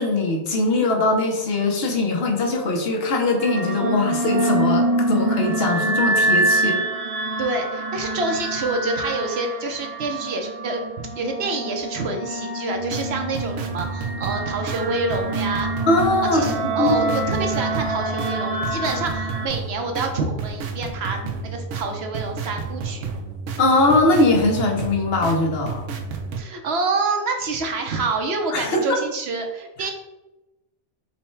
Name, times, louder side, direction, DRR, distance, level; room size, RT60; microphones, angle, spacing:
voice 1, 0.0-6.8 15.9-17.2 23.6-25.8 28.5-29.0, left 2 dB, 60° left, 2 dB, 0.9 m, -21 dB
sound 1, 3.4-19.5, right 2 dB, 45° right, 0.5 m, -26 dB
voice 2, 7.4-15.7 16.3-23.1 26.4-29.9, right 3 dB, 65° right, 4 dB, 0.9 m, -27 dB
sound 2, 12.7-26.4, right 4 dB, 85° right, 0.9 m, -32 dB
5.4 x 2.2 x 4.3 m, 0.99 s
omnidirectional pair, 1.2 m